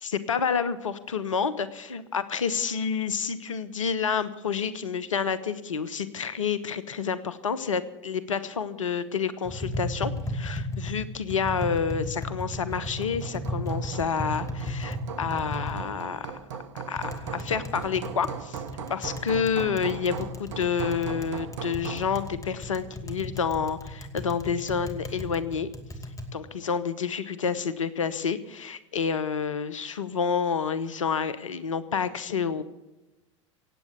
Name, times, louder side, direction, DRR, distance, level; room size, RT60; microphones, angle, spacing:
voice 1, 0.0-16.4 16.9-18.6 18.9-25.7 26.3-32.6, left 6 dB, 80° left, 15 dB, 1.0 m, -29 dB
Tap, 9.4-26.3, left 1 dB, 20° left, 2.5 m, -36 dB
Hammer, 12.5-22.2, right 7 dB, 70° right, 1.2 m, -39 dB
17.5 x 8.5 x 8.2 m, 1.0 s
figure-of-eight pair, 80°, 16 cm